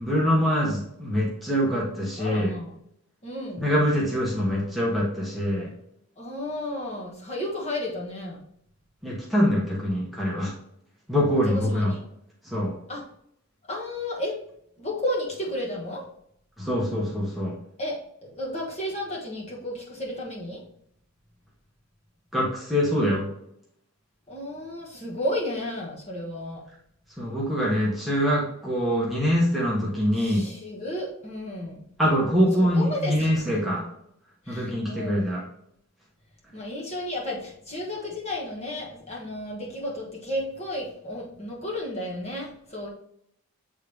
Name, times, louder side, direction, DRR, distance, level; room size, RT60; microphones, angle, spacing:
voice 1, 0.0-2.5 3.6-5.7 9.0-10.5 11.1-11.9 12.4-12.7 16.6-17.5 22.3-23.2 27.2-30.4 32.0-33.8 34.5-35.4, equal, ahead, -5 dB, 1.1 m, -24 dB
voice 2, 2.2-2.8 3.2-3.7 6.2-8.4 11.4-12.0 12.9-13.0 13.7-14.4 14.8-16.1 17.8-20.6 24.3-26.6 30.1-31.8 32.5-33.6 34.5-35.3 36.5-42.9, left 1 dB, 30° left, -3 dB, 1.5 m, -33 dB
8.2 x 3.6 x 3.4 m, 0.73 s
head